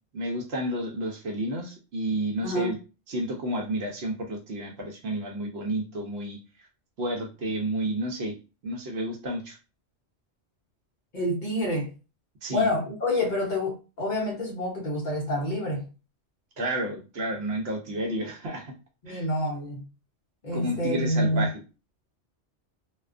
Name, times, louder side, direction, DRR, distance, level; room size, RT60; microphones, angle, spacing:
voice 1, 0.1-2.8 3.1-6.4 7.0-8.4 8.6-9.6 12.4-12.7 16.6-18.7 19.1-19.2 20.5-21.6, right 1 dB, 65° right, 0.8 m, -31 dB
voice 2, 2.4-2.8 11.1-11.9 12.5-15.9 19.0-19.9 20.4-21.5, left 1 dB, 50° left, 0.7 m, -27 dB
2.3 x 2.2 x 2.4 m
omnidirectional pair, 1.2 m